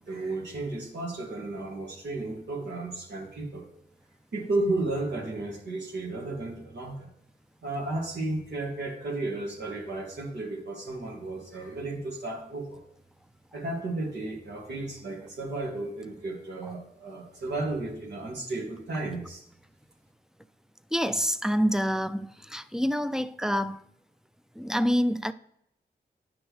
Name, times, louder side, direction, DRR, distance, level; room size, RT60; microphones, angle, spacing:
voice 1, 0.1-3.6 4.3-7.1 7.6-12.8 13.5-19.4, right 2 dB, 85° right, 2.1 m, -33 dB
voice 2, 20.9-23.8 24.5-25.3, equal, 5° right, 0.4 m, -27 dB
10.0 x 6.2 x 3.1 m
wide cardioid pair, 80°, 17 cm